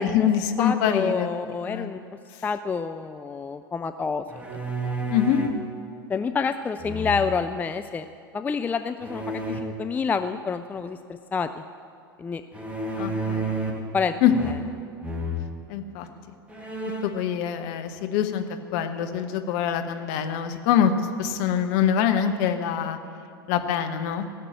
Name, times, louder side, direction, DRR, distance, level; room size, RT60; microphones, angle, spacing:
voice 1, 0.0-1.3 1.6-1.9 5.1-5.4 13.0-13.5 14.2-14.5 15.7-16.1 17.0-18.4 18.7-23.0 23.5-24.3, left 8 dB, 50° left, 6 dB, 1.1 m, -24 dB
voice 2, 0.6-2.0 2.4-4.2 4.9-5.0 6.1-8.1 8.3-11.5 12.2-12.4 13.9-14.1, left 5 dB, 15° left, 10 dB, 0.4 m, -28 dB
sound 1, 4.3-5.6 6.8-7.5 9.0-9.6 12.5-13.9 14.3-14.8 15.0-15.4 16.1-16.2 16.5-17.2, right 1 dB, 10° right, 1.8 m, -31 dB
17.0 x 6.7 x 8.7 m, 2.3 s
figure-of-eight pair, 85°, 12 cm